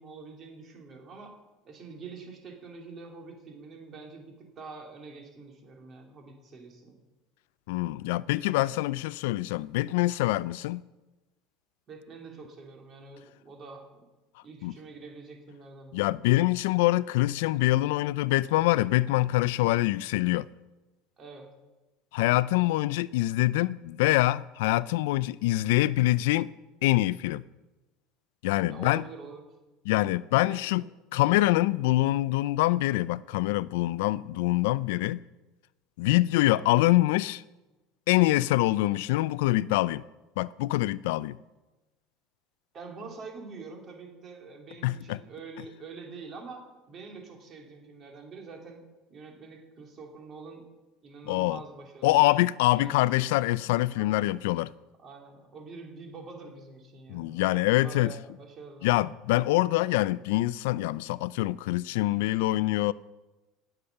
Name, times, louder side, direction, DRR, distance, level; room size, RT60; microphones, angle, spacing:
voice 1, 0.0-1.3 1.6-7.0 11.9-14.0 14.4-16.1 21.2-21.5 22.5-22.7 28.7-29.4 30.5-30.6 42.7-48.8 49.1-50.6 51.0-52.4 52.7-53.2 53.9-54.2 55.0-58.9, right 4 dB, 30° right, 2.7 m, -46 dB
voice 2, 7.7-10.8 14.6-14.7 15.9-20.5 22.1-26.5 26.8-27.4 28.4-29.0 29.9-30.8 31.1-35.2 36.0-37.4 38.1-40.0 40.4-41.4 44.8-45.2 51.3-51.6 52.0-54.7 57.1-58.1 58.8-62.9, left 17 dB, 85° left, 0.3 m, -25 dB
18.5 x 6.6 x 5.8 m
cardioid pair, 140°, 0 cm